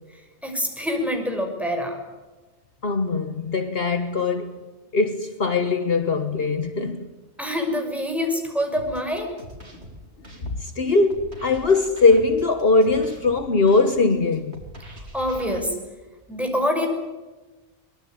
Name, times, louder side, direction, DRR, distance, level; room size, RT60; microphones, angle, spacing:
voice 1, 0.4-2.0 7.4-9.3 15.1-15.8 16.3-16.9, left 1 dB, ahead, 6.2 m, -25 dB
voice 2, 2.8-4.6 4.9-7.1 10.4-14.6, left 3 dB, 55° left, 1.4 m, -21 dB
sound 1, 8.7-15.6, right 1 dB, 65° right, 4.5 m, -43 dB
23.5 x 22.0 x 9.4 m
omnidirectional pair, 1.2 m